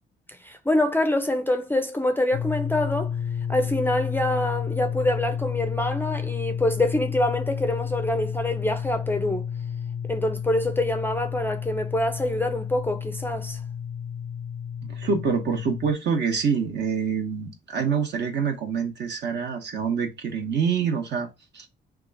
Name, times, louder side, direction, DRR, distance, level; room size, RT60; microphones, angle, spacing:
voice 1, 0.3-3.1 3.5-9.5 10.1-13.6, left 1 dB, 10° left, 0.4 m, -25 dB
sound 1, 2.3-15.9, left 8 dB, 85° left, 0.5 m, -31 dB
voice 2, 14.8-21.3 21.5-21.7, right 6 dB, 60° right, 1.1 m, -26 dB
2.9 x 2.4 x 3.9 m
cardioid pair, 90°, 20 cm